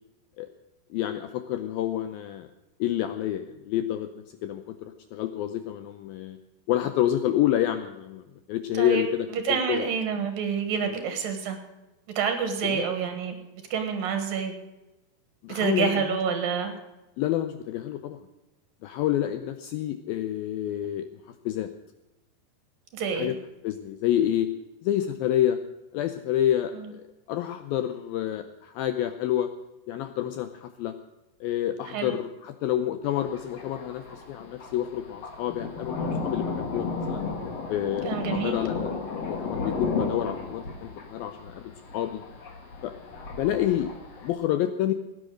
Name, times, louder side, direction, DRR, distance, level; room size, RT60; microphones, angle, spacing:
voice 1, 0.9-2.5 2.8-6.4 6.7-9.9 10.9-11.0 12.6-12.9 15.4-16.2 17.2-18.2 18.8-21.1 21.5-21.7 23.1-23.4 23.6-24.5 24.8-25.6 25.9-27.0 27.3-29.5 29.9-30.9 31.4-37.2 37.7-38.9 39.2-42.2 42.8-42.9 43.4-43.9 44.2-44.9, left 11 dB, 80° left, 9 dB, 2.2 m, -28 dB
voice 2, 9.3-11.6 12.2-13.4 13.7-14.5 15.5-16.7 22.9-23.3 31.9-32.1 38.0-38.6, right 6 dB, 65° right, 7 dB, 2.9 m, -28 dB
Thunder, 33.0-44.3, left 4 dB, 50° left, 2.2 m, -34 dB
16.0 x 10.0 x 6.4 m, 1.0 s
omnidirectional pair, 4.8 m